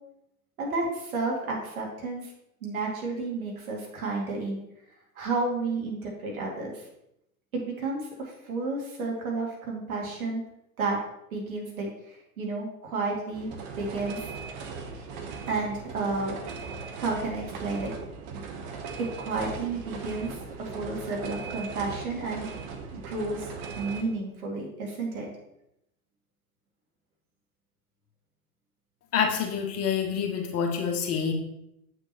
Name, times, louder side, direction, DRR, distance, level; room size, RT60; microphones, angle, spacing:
voice 1, 0.6-2.3 2.6-4.6 5.2-6.8 7.5-10.4 10.8-11.0 11.3-13.5 13.8-14.3 15.5-16.4 17.0-17.9 19.0-22.5 22.9-23.5 23.8-25.3, right 3 dB, 70° right, -1 dB, 2.2 m, -31 dB
sound 1, 13.3-24.0, right 5 dB, 45° right, 1.1 m, -39 dB
voice 2, 29.1-31.3, left 7 dB, 35° left, 2 dB, 1.2 m, -27 dB
7.4 x 6.5 x 2.9 m, 0.81 s
figure-of-eight pair, 85°, 44 cm